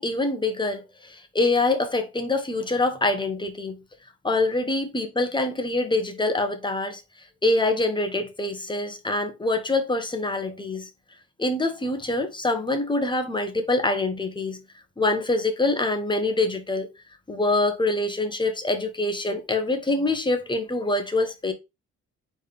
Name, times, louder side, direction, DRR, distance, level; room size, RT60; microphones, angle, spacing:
voice 1, 0.0-3.8 4.2-7.0 7.4-10.9 11.4-14.6 15.0-16.9 17.3-21.5, left 2 dB, 15° left, 1.0 m, -25 dB
4.3 x 3.5 x 3.4 m
cardioid pair, 90°, 30 cm